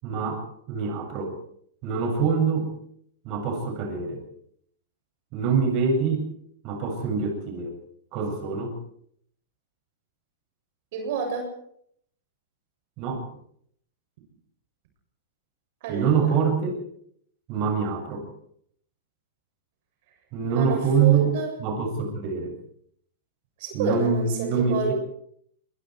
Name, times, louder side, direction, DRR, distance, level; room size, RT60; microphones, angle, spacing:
voice 1, 0.0-1.4 1.8-2.7 3.2-4.2 5.3-6.3 6.6-7.7 8.1-8.8 13.0-13.2 15.9-16.8 17.5-18.3 20.3-22.5 23.7-24.9, right 5 dB, 40° right, 3 dB, 7.7 m, -25 dB
voice 2, 10.9-11.5 15.8-16.4 20.5-21.5 23.6-24.9, right 5 dB, 55° right, 3 dB, 7.5 m, -29 dB
24.5 x 24.0 x 4.8 m, 0.66 s
supercardioid pair, 150°, 0 cm